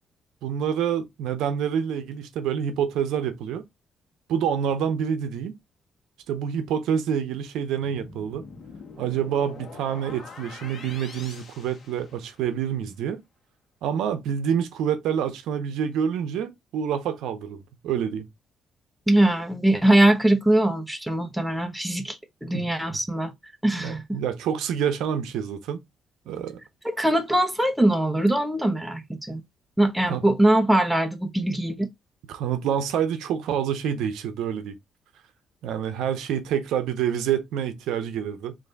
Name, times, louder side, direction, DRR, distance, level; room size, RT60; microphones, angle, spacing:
voice 1, 0.4-3.6 4.3-5.6 6.3-8.5 9.0-13.2 13.8-18.3 22.4-23.0 23.8-25.8 26.3-26.6 30.1-30.3 31.4-31.5 32.3-34.8 35.6-38.6, right 8 dB, 85° right, 0.6 m, -27 dB
sound 1, 7.8-12.6, left 4 dB, 45° left, 1.0 m, -44 dB
voice 2, 19.1-23.3 23.6-24.2 26.8-29.4 29.8-31.9, right 1 dB, 5° right, 0.7 m, -22 dB
3.3 x 2.6 x 3.8 m
cardioid pair, 90°, 0 cm